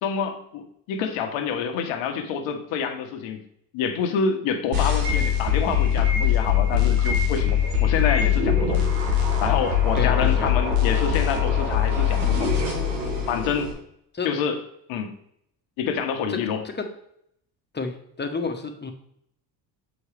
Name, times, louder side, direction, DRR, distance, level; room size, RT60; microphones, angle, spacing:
voice 1, 0.0-3.4 3.7-8.8 9.4-12.5 13.3-13.7 14.2-14.6 14.9-15.1 15.8-16.6, left 6 dB, 70° left, 6 dB, 1.2 m, -27 dB
sound 1, 4.7-13.7, left 7 dB, 85° right, 1.9 m, -22 dB
voice 2, 9.9-10.5 14.1-14.3 16.3-16.4 16.6-16.9 17.7-18.9, left 4 dB, 20° left, 4 dB, 1.2 m, -30 dB
7.1 x 4.9 x 3.4 m, 0.72 s
hypercardioid pair, 65°, 49 cm